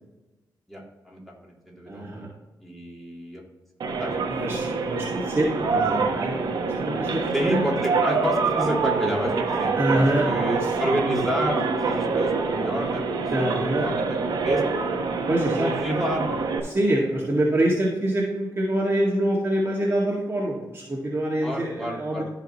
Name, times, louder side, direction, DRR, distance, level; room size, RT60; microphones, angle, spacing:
voice 1, 0.7-2.3 2.6-3.4 3.9-4.1 5.7-6.1 7.3-13.2 13.4-13.5 13.8-14.0 14.4-14.6 15.6-16.4 21.4-22.2, equal, ahead, -3 dB, 3.0 m, -29 dB
voice 2, 1.9-2.3 4.3-5.8 6.1-7.6 9.8-10.3 10.6-10.7 13.3-13.8 15.3-15.7 16.6-22.2, right 1 dB, 30° right, -4 dB, 1.9 m, -25 dB
sound 1, 3.8-16.6, right 4 dB, 75° right, 1.3 m, -26 dB
14.0 x 5.0 x 3.1 m, 1.1 s
cardioid pair, 85°, 8 cm